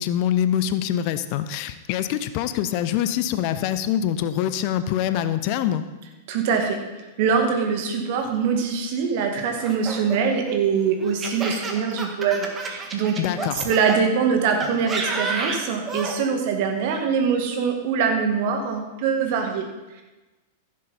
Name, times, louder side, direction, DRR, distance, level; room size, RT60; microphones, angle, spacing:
voice 1, 0.0-5.8 13.2-13.7, left 10 dB, 45° left, 12 dB, 0.6 m, -24 dB
voice 2, 6.3-6.8 7.2-13.2 13.6-19.6, right 6 dB, 50° right, 4 dB, 1.9 m, -23 dB
Laughter, 9.6-14.0 14.6-16.2, right 4 dB, 20° right, 1.7 m, -30 dB
15.0 x 7.5 x 4.2 m, 1.1 s
figure-of-eight pair, 95°, 0 cm